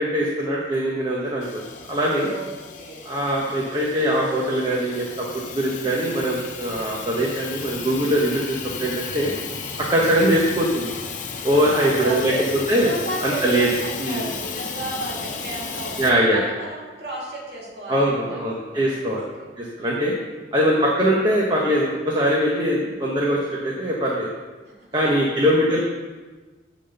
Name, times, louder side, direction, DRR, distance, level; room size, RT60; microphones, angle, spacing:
voice 1, 0.0-1.6 1.9-2.3 3.1-9.3 9.9-10.9 11.4-12.3 12.7-12.9 13.2-13.7 14.0-14.2 16.0-16.4 17.9-19.2 19.6-20.1 20.5-24.3 24.9-25.8, equal, 25° right, -4 dB, 1.1 m, -22 dB
Hiss / Toilet flush / Trickle dribble, 1.4-16.1, left 5 dB, 45° left, 0.8 m, -34 dB
voice 2, 5.5-5.9 9.8-10.1 11.4-12.4 12.8-19.5 20.1-20.3 22.6-23.0 24.7-24.9 25.1-25.2 25.6-25.8, right 1 dB, 60° right, -4 dB, 2.6 m, -34 dB
10.0 x 4.1 x 6.9 m, 1.3 s
head